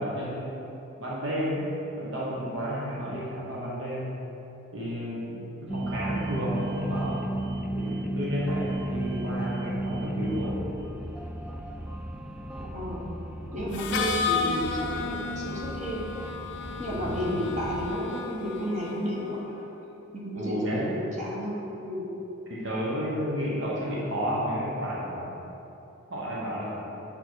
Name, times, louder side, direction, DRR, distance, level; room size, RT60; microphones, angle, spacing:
voice 1, 0.0-4.2 4.7-7.2 7.7-10.7 16.9-17.4 20.4-20.9 22.5-25.4 26.1-26.9, equal, 60° right, -5 dB, 1.0 m, -32 dB
sound 1, 5.7-17.9, right 1 dB, 5° right, 0.3 m, -34 dB
voice 2, 12.6-13.2 13.5-16.1 16.8-19.5 20.1-22.1, equal, 35° right, -5 dB, 1.3 m, -32 dB
Harmonica, 13.7-19.5, left 5 dB, 55° left, 0.5 m, -33 dB
7.0 x 5.3 x 4.6 m, 3.0 s
head